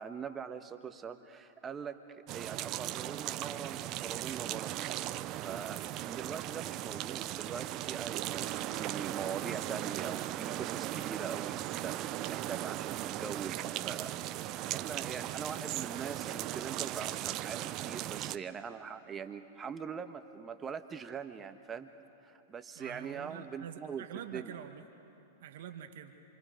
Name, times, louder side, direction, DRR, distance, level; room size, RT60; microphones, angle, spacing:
voice 1, 0.0-4.7 5.3-14.2 14.7-21.9 22.2-24.5, right 6 dB, 25° right, 9 dB, 1.3 m, -42 dB
sound 1, 2.3-18.4, right 14 dB, 40° right, 0.7 m, -37 dB
voice 2, 22.8-24.8 25.4-26.1, right 9 dB, 65° right, 6 dB, 1.5 m, -46 dB
28.5 x 25.5 x 5.3 m, 2.8 s
hypercardioid pair, 105°, 0 cm